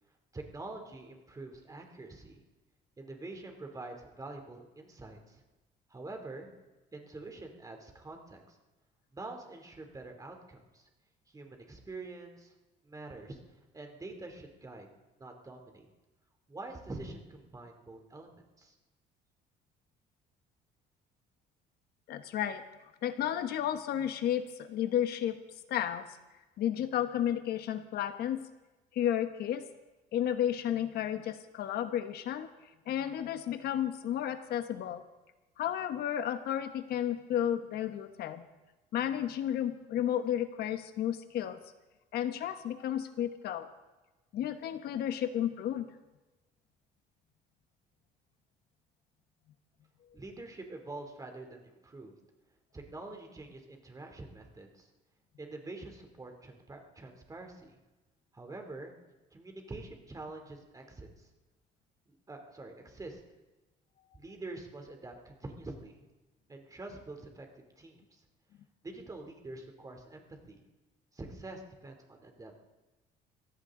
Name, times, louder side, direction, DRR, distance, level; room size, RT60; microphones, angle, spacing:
voice 1, 0.3-2.4 3.0-5.4 5.9-6.5 6.9-8.6 9.1-10.9 11.3-12.5 12.8-13.4 13.7-14.9 15.2-15.9 16.5-18.7 50.1-52.1 52.7-54.9 55.4-57.8 58.3-58.9 59.3-61.3 62.1-63.2 64.1-66.0 66.5-68.2 68.8-70.6 71.1-72.5, right 2 dB, 20° right, 3 dB, 3.0 m, -46 dB
voice 2, 22.1-22.6 23.0-25.4 25.7-26.1 26.6-28.4 28.9-29.6 30.1-32.5 32.9-35.0 35.6-38.4 38.9-41.6 42.1-43.7 44.3-45.9, left 10 dB, 70° left, 9 dB, 1.1 m, -32 dB
23.5 x 16.0 x 3.8 m, 1.1 s
cardioid pair, 110°, 17 cm